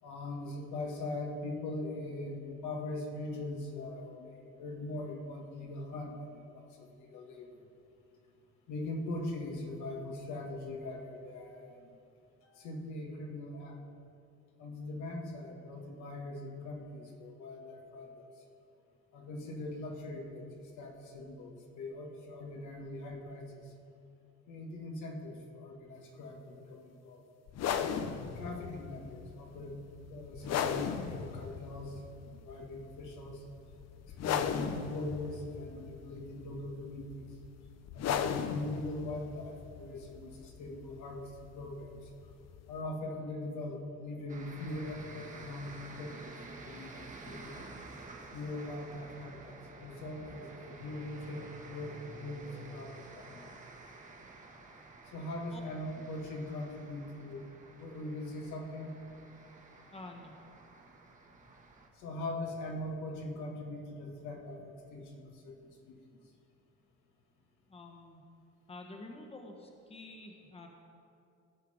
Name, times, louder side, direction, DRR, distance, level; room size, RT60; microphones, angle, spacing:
voice 1, 0.0-7.5 8.7-11.9 12.4-13.8 14.6-18.2 19.1-23.6 24.5-27.2 28.4-29.8 30.1-33.4 34.0-37.3 37.9-42.0 42.7-47.7 48.3-53.5 55.1-57.4 57.8-58.9 62.0-66.0, left 2 dB, 80° left, 1 dB, 1.7 m, -41 dB
sound 1, 27.5-42.8, left 8 dB, 60° left, 0.6 m, -38 dB
sound 2, 44.3-61.9, right 3 dB, 25° right, 1.4 m, -51 dB
voice 2, 59.9-60.3 67.7-68.2 68.7-70.7, left 2 dB, 20° left, 2 dB, 1.3 m, -48 dB
16.5 x 5.7 x 5.0 m, 2.6 s
cardioid pair, 110°, 29 cm